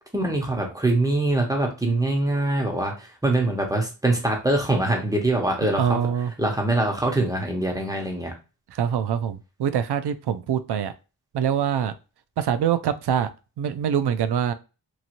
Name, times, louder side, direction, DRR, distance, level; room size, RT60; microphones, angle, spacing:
voice 1, 0.1-6.0 6.4-8.3, right 2 dB, 10° right, 0.9 m, -23 dB
voice 2, 5.6-6.3 8.7-10.9 11.3-11.9 12.4-13.3 13.6-14.5, right 8 dB, 65° right, 0.5 m, -24 dB
3.1 x 2.7 x 2.5 m
wide cardioid pair, 85°, 44 cm